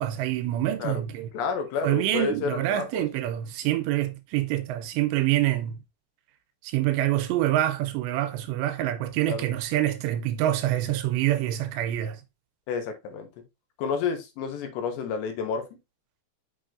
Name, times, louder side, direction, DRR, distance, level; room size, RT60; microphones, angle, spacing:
voice 1, 0.0-1.3 1.8-5.8 6.6-12.2, right 13 dB, 80° right, 2.7 m, -26 dB
voice 2, 1.3-3.1 9.3-9.4 12.7-13.3 13.8-15.6, left 5 dB, 75° left, 3.2 m, -30 dB
6.4 x 6.3 x 2.6 m
omnidirectional pair, 5.3 m